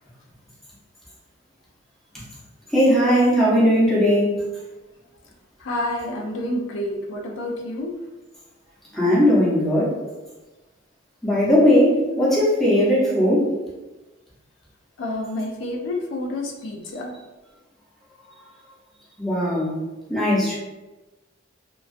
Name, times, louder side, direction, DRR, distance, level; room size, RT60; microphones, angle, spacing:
voice 1, 2.7-4.5 8.9-9.9 11.2-13.5 19.2-19.8 20.1-20.5, equal, ahead, -7 dB, 0.6 m, -18 dB
voice 2, 5.6-7.9 15.0-17.1, left 1 dB, 70° left, 0 dB, 0.4 m, -29 dB
2.2 x 2.2 x 2.4 m, 1.1 s
head